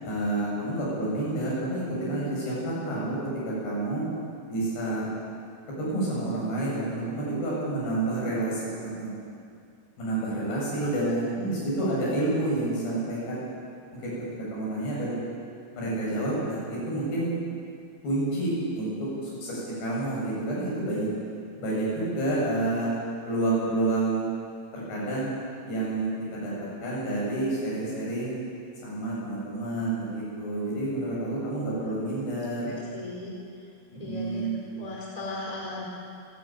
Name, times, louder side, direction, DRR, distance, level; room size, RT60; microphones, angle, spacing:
voice 1, 0.0-4.1 4.5-5.1 5.8-9.1 10.0-13.4 13.9-14.1 14.5-15.2 15.7-17.3 18.0-21.1 21.6-22.9 23.3-24.3 24.7-25.3 25.7-28.4 28.8-32.7 33.9-34.6, right 2 dB, 60° left, -6 dB, 9.6 m, -29 dB
voice 2, 32.6-33.3 34.0-34.5 34.8-35.8, left 2 dB, 10° left, -4 dB, 4.0 m, -37 dB
29.0 x 11.5 x 9.2 m, 2.3 s
omnidirectional pair, 5.4 m